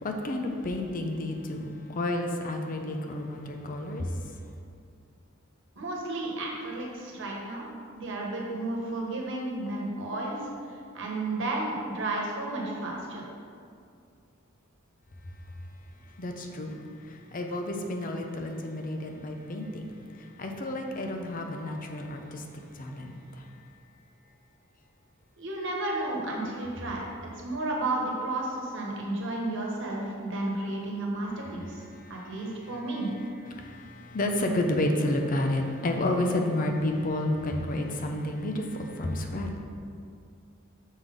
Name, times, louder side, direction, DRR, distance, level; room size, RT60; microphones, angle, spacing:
voice 1, 0.0-4.1 16.2-16.8 17.3-19.9 20.4-22.4 22.8-23.1 33.5-39.5, left 1 dB, 45° left, 3 dB, 0.6 m, -30 dB
voice 2, 5.7-7.6 7.9-10.4 10.9-13.2 25.4-27.0 27.3-31.8 32.1-33.1, right 2 dB, 65° right, -2 dB, 1.2 m, -32 dB
6.3 x 3.8 x 5.1 m, 2.3 s
head